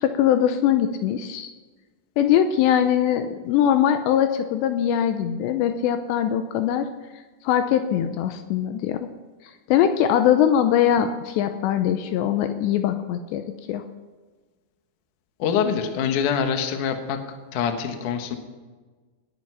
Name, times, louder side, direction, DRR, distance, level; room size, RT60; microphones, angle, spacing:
voice 1, 0.0-1.5 2.2-6.9 7.4-9.1 9.7-13.8, left 10 dB, 85° left, 8 dB, 2.8 m, -21 dB
voice 2, 15.4-17.2 17.5-18.4, left 7 dB, 65° left, 6 dB, 2.1 m, -24 dB
19.5 x 9.5 x 5.7 m, 1.3 s
omnidirectional pair, 5.3 m